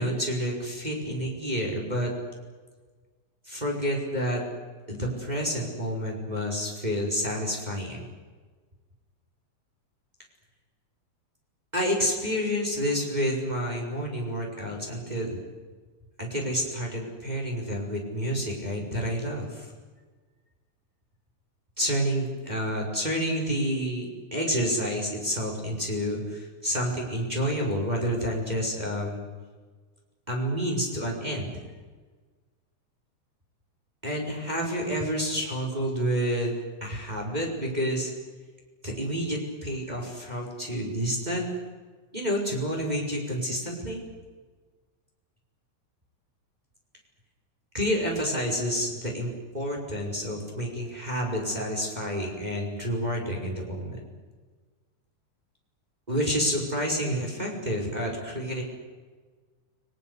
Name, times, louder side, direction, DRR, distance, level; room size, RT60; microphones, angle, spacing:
voice 1, 0.0-2.1 3.5-4.4 4.9-8.0 11.7-15.4 16.2-19.7 21.8-29.3 30.3-31.5 34.0-36.5 36.8-38.1 38.8-41.5 42.1-44.0 47.7-54.0 56.1-58.6, equal, 10° right, 0 dB, 5.4 m, -29 dB
30.0 x 21.0 x 8.3 m, 1.4 s
omnidirectional pair, 3.6 m